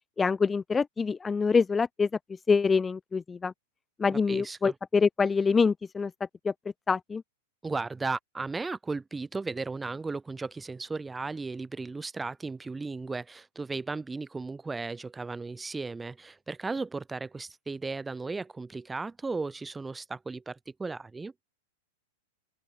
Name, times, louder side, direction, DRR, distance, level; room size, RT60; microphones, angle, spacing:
voice 1, 0.2-2.1 2.5-3.5 4.0-6.1 6.4-6.5 6.9-7.2, left 5 dB, 15° left, 1.0 m, -25 dB
voice 2, 4.1-4.7 7.6-21.3, right 3 dB, 10° right, 5.2 m, -35 dB
open air
hypercardioid pair, 105°, 0 cm